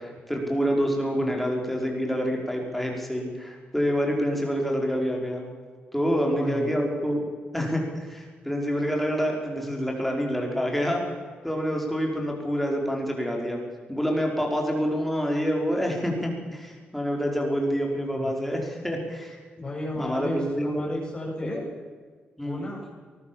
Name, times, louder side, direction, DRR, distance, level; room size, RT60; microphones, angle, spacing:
voice 1, 0.0-5.5 5.9-7.2 7.5-11.0 11.4-13.6 13.9-19.4 20.0-20.7 21.5-21.6 22.4-22.7, equal, 5° left, 0 dB, 5.2 m, -27 dB
voice 2, 6.0-6.7 18.1-18.3 19.6-21.6 22.4-22.9, left 1 dB, 25° left, -2 dB, 8.0 m, -33 dB
23.5 x 20.0 x 7.3 m, 1.5 s
wide cardioid pair, 150°, 4 cm